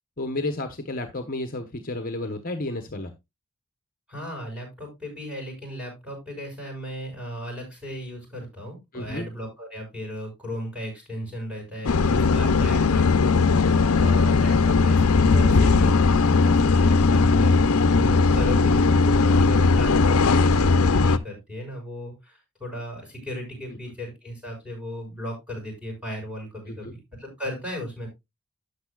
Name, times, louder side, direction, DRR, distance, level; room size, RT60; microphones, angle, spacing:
voice 1, 0.2-3.1 8.9-9.3 13.6-13.9 23.7-23.8 26.7-26.9, left 2 dB, 40° left, 7 dB, 1.0 m, -32 dB
voice 2, 4.1-13.7 14.0-26.9 27.2-28.1, equal, 5° right, 0 dB, 6.3 m, -36 dB
Bus Ride, 11.8-21.2, left 4 dB, 90° left, 0.6 m, -18 dB
12.5 x 8.2 x 2.4 m, 0.22 s
head